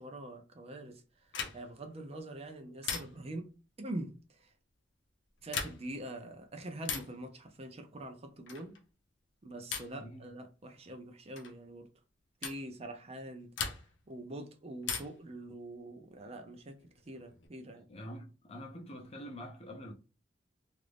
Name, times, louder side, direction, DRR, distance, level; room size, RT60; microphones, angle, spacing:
voice 1, 0.0-3.5 3.8-4.5 5.4-8.8 9.4-11.9 12.4-13.5 14.1-17.9, right 1 dB, 35° right, 0.5 m, -44 dB
sound 1, 1.3-1.8 2.8-3.4 5.4-6.0 6.8-7.2 8.5-8.8 9.7-10.1 11.4-11.6 12.4-12.7 13.6-14.1 14.8-15.3 16.8-17.5, left 6 dB, 90° left, 0.7 m, -39 dB
voice 2, 10.0-10.3 17.7-19.9, equal, 35° left, 0.6 m, -46 dB
2.9 x 2.5 x 3.3 m
head